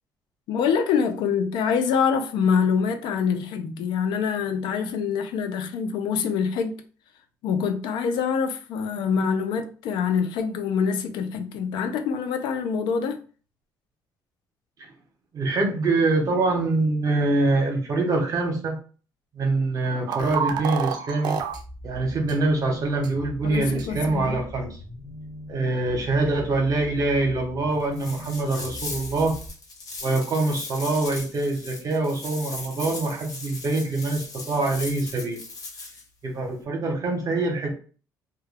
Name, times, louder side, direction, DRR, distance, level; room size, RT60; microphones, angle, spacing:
voice 1, 0.5-6.8 7.4-13.2 23.4-24.4, left 6 dB, 85° left, 0.4 m, -25 dB
voice 2, 15.3-18.8 19.3-21.4 21.8-24.8 25.5-29.4 30.0-35.4 36.2-37.8, right 2 dB, 50° right, 0.9 m, -24 dB
sound 1, 20.1-21.6 22.3-22.4 23.0-23.1 23.8-23.9, right 7 dB, 70° right, 0.4 m, -28 dB
sound 2, 21.5-29.5, left 1 dB, 15° left, 0.9 m, -41 dB
sound 3, 27.9-36.0, left 3 dB, 50° left, 1.0 m, -38 dB
2.2 x 2.1 x 3.2 m
cardioid pair, 100°, 8 cm